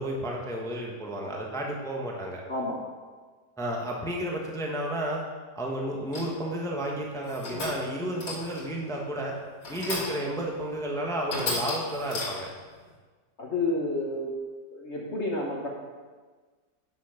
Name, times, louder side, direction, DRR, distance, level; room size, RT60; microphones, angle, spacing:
voice 1, 0.0-2.4 3.6-5.2 5.5-9.3 9.7-12.5, right 1 dB, ahead, -1 dB, 0.9 m, -32 dB
voice 2, 2.5-2.8 13.4-14.3 14.7-15.7, left 2 dB, 45° left, -2 dB, 1.2 m, -30 dB
sound 1, 6.1-6.5 7.2-7.9 8.2-8.7 9.6-10.3 10.8-10.9 11.3-12.6, left 2 dB, 85° left, 2.9 m, -34 dB
9.3 x 6.3 x 5.8 m, 1.4 s
omnidirectional pair, 1.9 m